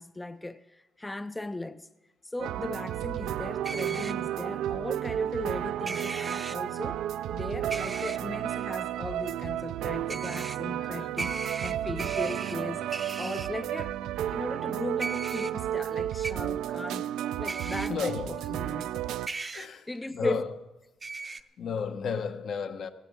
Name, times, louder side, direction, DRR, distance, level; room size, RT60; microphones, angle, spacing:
voice 1, 0.0-1.9 2.2-7.0 7.3-14.0 14.3-17.1 17.4-19.2 19.9-20.4, left 2 dB, 15° left, 0.4 m, -37 dB
sound 1, 2.4-19.3, right 11 dB, 85° right, 0.4 m, -32 dB
sound 2, 3.6-4.1 5.9-6.6 7.7-8.2 10.1-10.6 11.2-12.5 12.9-13.5 15.0-15.5 16.2-16.3 17.5-17.9 19.3-19.7 21.0-21.4, right 3 dB, 30° right, 0.6 m, -36 dB
voice 2, 10.8-11.1 17.9-18.4 19.5-20.5 21.2-22.9, left 6 dB, 65° left, 1.1 m, -33 dB
17.0 x 16.5 x 3.6 m
cardioid pair, 90°, 0 cm